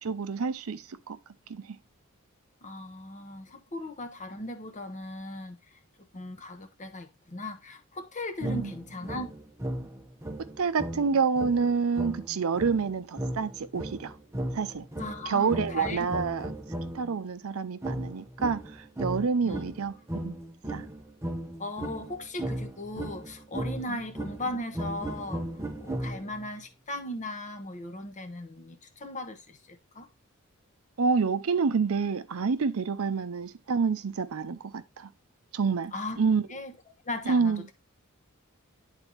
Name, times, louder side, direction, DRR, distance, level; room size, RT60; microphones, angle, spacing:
voice 1, 0.0-1.2 1.5-1.8 8.4-8.7 10.6-14.1 14.5-14.9 15.3-16.5 16.9-20.4 20.7-20.8 23.9-24.0 31.0-35.1 35.5-36.4 37.3-37.6, right 5 dB, 70° right, 0.5 m, -28 dB
voice 2, 2.6-5.6 6.1-9.3 15.0-16.1 19.4-19.6 21.6-30.1 35.9-36.2 36.5-36.7 37.0-37.7, left 1 dB, 35° left, 0.9 m, -38 dB
sound 1, 8.4-17.2 17.8-26.5, right 1 dB, 15° right, 0.7 m, -36 dB
10.5 x 4.1 x 2.9 m
head